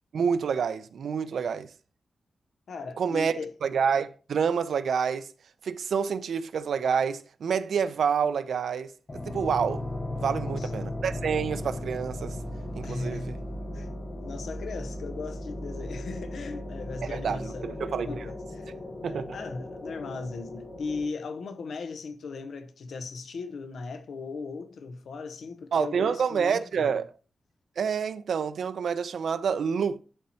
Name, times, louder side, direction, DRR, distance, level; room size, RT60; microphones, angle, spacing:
voice 1, 0.1-1.7 3.0-5.3 5.6-8.9 9.2-9.8 10.2-12.4 12.7-13.3 17.0-18.1 19.0-19.4 25.7-27.0 27.8-30.0, right 6 dB, 85° right, 0.5 m, -28 dB
voice 2, 2.7-3.5 10.2-10.8 12.8-13.4 13.7-14.0 14.2-27.0, left 4 dB, 80° left, 0.7 m, -38 dB
sound 1, 9.1-21.1, left 1 dB, 30° left, 1.2 m, -36 dB
11.0 x 4.3 x 2.8 m
wide cardioid pair, 150°, 0 cm